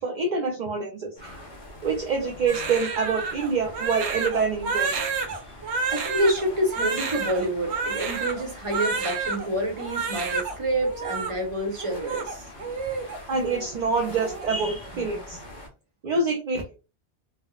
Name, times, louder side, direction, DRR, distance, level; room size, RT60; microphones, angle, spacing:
voice 1, 0.0-1.4 1.8-5.0 13.3-15.4 16.0-16.7, right 4 dB, 55° right, 0.5 m, -26 dB
sound 1, 1.2-15.7, left 1 dB, 25° left, 1.0 m, -44 dB
Crying sobbing, 2.5-9.5 9.8-10.6 10.8-11.3 11.8-13.2 13.5-13.7 14.0-14.5, right 4 dB, 80° right, 0.9 m, -30 dB
voice 2, 5.9-12.5, right 1 dB, 30° right, 0.9 m, -28 dB
3.4 x 2.1 x 2.3 m
omnidirectional pair, 1.1 m